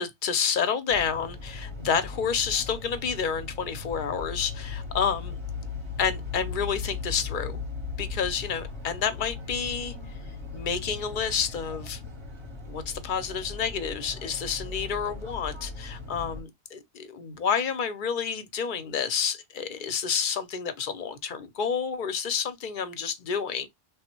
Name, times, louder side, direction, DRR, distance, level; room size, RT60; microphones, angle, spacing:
voice 1, 0.0-5.4 6.0-7.6 8.0-10.0 10.5-12.0 12.6-23.7, left 6 dB, 55° left, 0.6 m, -29 dB
sound 1, 0.9-16.4, left 4 dB, 30° right, 0.7 m, -38 dB
3.4 x 2.1 x 2.8 m
omnidirectional pair, 1.2 m